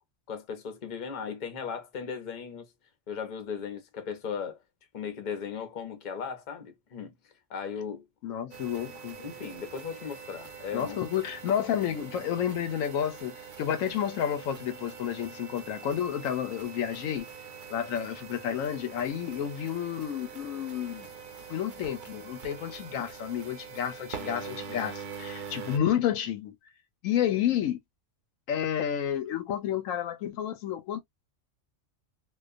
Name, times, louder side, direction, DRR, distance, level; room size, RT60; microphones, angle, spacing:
voice 1, 0.3-2.7 3.1-4.6 4.9-7.1 7.5-8.0 9.2-11.0, left 6 dB, 45° left, 0.8 m, -37 dB
voice 2, 8.2-9.2 10.7-17.3 17.7-21.1 21.5-26.5 27.0-27.8 28.5-31.0, left 9 dB, 85° left, 1.0 m, -30 dB
sound 1, 8.5-25.8, right 6 dB, 50° right, 0.7 m, -44 dB
2.5 x 2.3 x 2.4 m
omnidirectional pair, 1.3 m